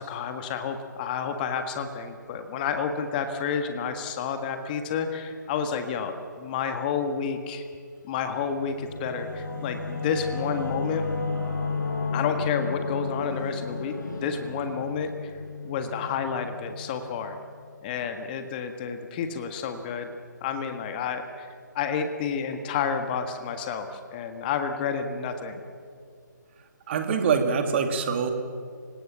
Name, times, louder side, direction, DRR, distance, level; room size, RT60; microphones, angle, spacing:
voice 1, 0.0-7.6 8.0-11.0 12.1-13.9 14.2-15.3 15.6-17.4 17.8-20.1 20.4-25.6, left 6 dB, 25° left, 7 dB, 1.6 m, -30 dB
Singing / Musical instrument, 8.3-17.3, left 4 dB, 65° left, 5.7 m, -33 dB
voice 2, 26.9-28.3, right 6 dB, 35° right, 6 dB, 2.5 m, -24 dB
30.0 x 18.0 x 7.4 m, 2.3 s
figure-of-eight pair, 145°, 10 cm